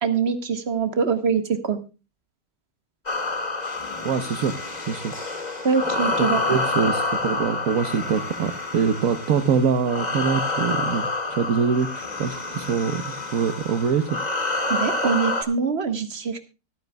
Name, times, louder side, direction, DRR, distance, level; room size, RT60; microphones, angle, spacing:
voice 1, 0.0-1.8 5.6-6.4 14.7-16.4, right 5 dB, 40° right, 8 dB, 1.8 m, -23 dB
sound 1, 3.1-15.4, left 3 dB, 25° left, 2.0 m, -28 dB
voice 2, 4.0-4.5 4.8-5.1 6.2-14.2, right 6 dB, 65° right, 8 dB, 1.3 m, -24 dB
24.5 x 9.2 x 2.3 m, 0.31 s
omnidirectional pair, 1.6 m